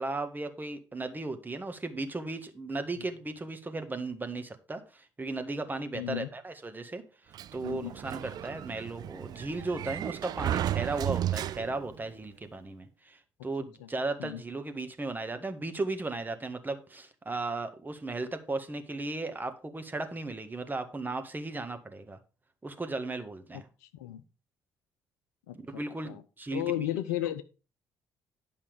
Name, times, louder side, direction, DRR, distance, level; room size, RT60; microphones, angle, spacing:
voice 1, 0.0-22.2 22.6-23.7 25.6-26.6, right 3 dB, 20° right, 8 dB, 1.7 m, -36 dB
voice 2, 5.9-6.3 7.6-7.9 13.8-13.9 14.2-14.4 23.8-24.2 25.5-25.6 26.0-26.2 26.5-27.4, left 12 dB, 70° left, 12 dB, 0.7 m, -33 dB
Sliding door, 7.3-12.0, right 12 dB, 45° right, 0.4 m, -34 dB
10.5 x 5.7 x 4.9 m, 0.32 s
figure-of-eight pair, 45°, 9 cm